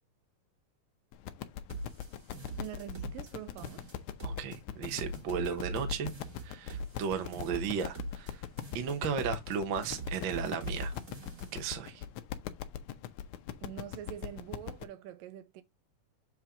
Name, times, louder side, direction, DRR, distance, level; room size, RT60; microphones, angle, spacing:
sound 1, 1.1-14.8, left 11 dB, 75° left, 2.0 m, -41 dB
sound 2, 1.7-3.3 3.6-4.6 4.8-8.3 8.6-9.6 9.8-11.7, right 1 dB, 30° right, 1.8 m, -42 dB
voice 1, 2.6-3.8 13.6-15.6, right 11 dB, 80° right, 2.5 m, -44 dB
voice 2, 4.2-6.1 6.4-8.4 8.7-10.9 11.5-12.0, right 7 dB, 60° right, 1.2 m, -35 dB
7.9 x 4.6 x 3.7 m
omnidirectional pair, 4.0 m